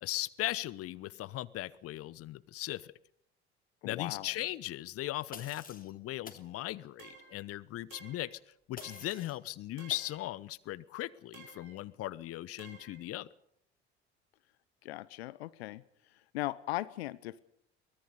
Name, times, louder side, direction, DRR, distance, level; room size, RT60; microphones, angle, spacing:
voice 1, 0.0-2.9 3.8-8.4 8.7-13.3, left 16 dB, 45° left, 19 dB, 0.9 m, -38 dB
voice 2, 3.8-4.3 14.8-15.8 16.3-17.4, left 17 dB, 70° left, 18 dB, 0.9 m, -38 dB
sound 1, 5.3-5.9 6.3-6.5 8.8-9.4 9.9-10.1, left 5 dB, 25° left, 3.1 m, -48 dB
sound 2, 7.0-7.4 7.9-8.4 8.8-9.3 9.8-10.2 11.3-11.8 12.6-13.0, right 5 dB, 60° right, 6.3 m, -54 dB
23.5 x 19.0 x 6.9 m, 0.69 s
figure-of-eight pair, 60°, 33 cm